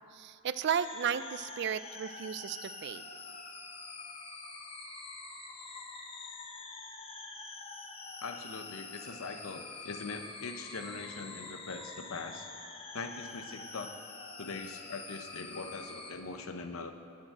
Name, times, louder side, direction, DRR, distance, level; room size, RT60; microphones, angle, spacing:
voice 1, 0.1-3.0, right 8 dB, 55° right, 14 dB, 0.4 m, -34 dB
sound 1, 0.7-16.1, left 3 dB, 25° left, 0.9 m, -46 dB
voice 2, 8.2-12.5 12.9-13.9 14.4-16.9, left 4 dB, 85° left, 7 dB, 0.8 m, -42 dB
9.1 x 8.3 x 7.5 m, 2.5 s
head